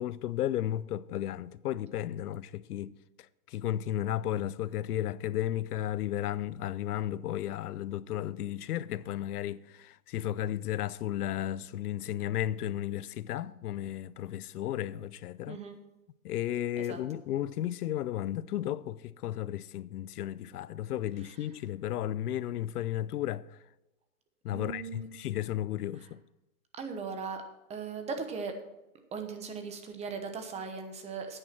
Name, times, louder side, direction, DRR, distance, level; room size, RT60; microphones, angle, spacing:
voice 1, 0.0-2.9 3.5-15.6 16.2-23.5 24.4-26.2, left 12 dB, 80° left, 0.6 m, -34 dB
voice 2, 15.5-15.8 16.8-17.0 24.5-25.3 26.7-27.4 27.7-28.6 29.1-31.4, right 5 dB, 15° right, 1.0 m, -38 dB
10.5 x 9.0 x 4.4 m
hypercardioid pair, 140°, 45 cm